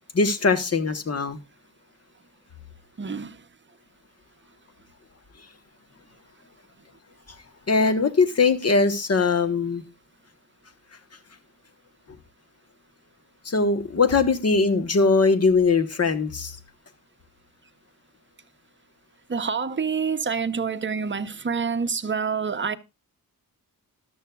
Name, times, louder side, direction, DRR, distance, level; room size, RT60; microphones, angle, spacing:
voice 1, 0.1-1.4 7.7-9.8 13.4-16.5, left 4 dB, 45° left, 1.2 m, -21 dB
voice 2, 3.0-3.4 19.3-22.8, right 5 dB, 30° right, 0.7 m, -27 dB
13.5 x 12.0 x 2.3 m
wide cardioid pair, 155°, 36 cm